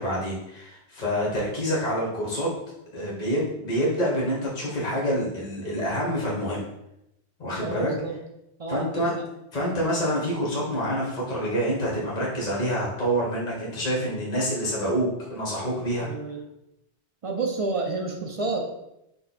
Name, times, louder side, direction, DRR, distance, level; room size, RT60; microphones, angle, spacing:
voice 1, 0.0-2.5 2.9-6.7 7.4-7.9 8.7-9.1 9.5-16.1, equal, 45° left, -4 dB, 1.3 m, -27 dB
voice 2, 7.6-8.2 8.6-9.2 15.9-16.5 17.2-18.8, right 3 dB, 45° right, 2 dB, 0.4 m, -30 dB
5.4 x 2.3 x 4.1 m, 0.85 s
omnidirectional pair, 1.1 m